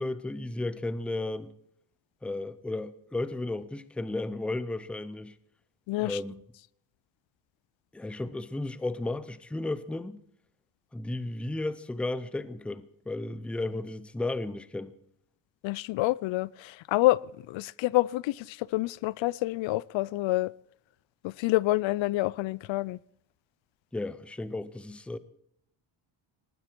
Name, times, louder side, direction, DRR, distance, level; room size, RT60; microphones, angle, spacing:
voice 1, 0.0-1.5 2.2-5.3 6.0-6.3 7.9-10.2 10.9-14.9 23.9-25.2, left 2 dB, 5° left, 0.5 m, -34 dB
voice 2, 5.9-6.2 15.6-17.2 17.5-20.5 21.2-23.0, left 18 dB, 70° left, 0.5 m, -27 dB
19.5 x 15.0 x 4.5 m
cardioid pair, 165°, 48 cm